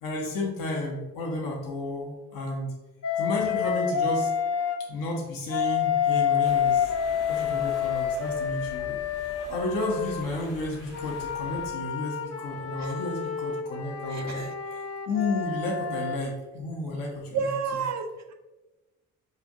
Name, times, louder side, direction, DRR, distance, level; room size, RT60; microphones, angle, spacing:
voice 1, 0.0-2.7 3.2-4.3 4.9-6.9 7.3-9.0 9.5-17.4, left 2 dB, 60° left, -2 dB, 1.0 m, -32 dB
Wind instrument woodwind instrument, 3.0-4.8 5.5-10.3 10.9-16.2, left 7 dB, 40° left, 0.5 m, -28 dB
sound 1, 6.4-11.7, left 2 dB, 90° left, 1.0 m, -45 dB
voice 2, 14.1-14.5 17.3-18.3, right 5 dB, 45° right, 5 dB, 0.5 m, -31 dB
5.5 x 2.5 x 2.6 m, 1.1 s
hypercardioid pair, 50°, 38 cm